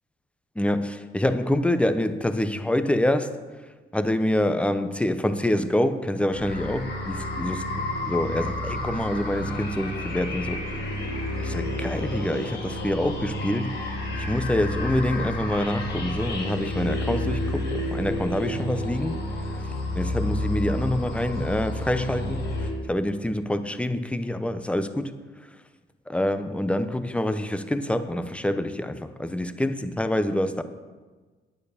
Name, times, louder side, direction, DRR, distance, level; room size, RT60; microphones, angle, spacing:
voice 1, 0.6-3.3 3.9-7.6 8.0-10.6 11.4-13.8 14.1-19.2 19.5-19.6 20.0-25.1 26.1-30.6, left 1 dB, 5° left, 10 dB, 0.8 m, -26 dB
sound 1, 6.3-22.7, left 1 dB, 65° left, 3.8 m, -30 dB
9.5 x 8.9 x 6.7 m, 1.4 s
cardioid pair, 90°, 20 cm